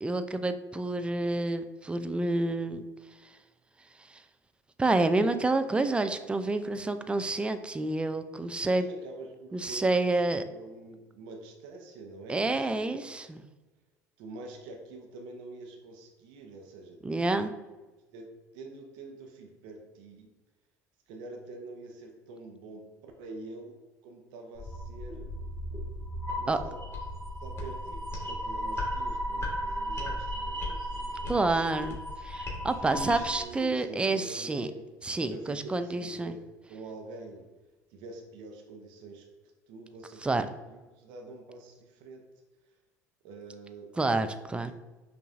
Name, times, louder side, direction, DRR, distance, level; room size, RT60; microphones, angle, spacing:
voice 1, 0.0-2.9 4.1-4.2 4.8-8.9 9.5-10.4 12.3-13.4 17.0-17.5 26.5-26.6 31.3-34.7 35.0-36.4 40.2-40.5 44.0-44.7, right 2 dB, 10° right, 9 dB, 0.3 m, -28 dB
voice 2, 8.8-12.9 14.2-17.0 18.1-18.3 18.5-20.3 21.1-23.7 24.0-25.3 26.4-26.8 27.2-31.7 32.8-34.9 35.1-37.5 37.9-39.2 39.7-42.2 43.2-44.3, right 2 dB, 70° right, 3 dB, 0.7 m, -46 dB
sound 1, 24.6-33.4, equal, 30° left, 1.5 m, -35 dB
5.4 x 2.6 x 2.4 m, 1.2 s
hypercardioid pair, 75°, 9 cm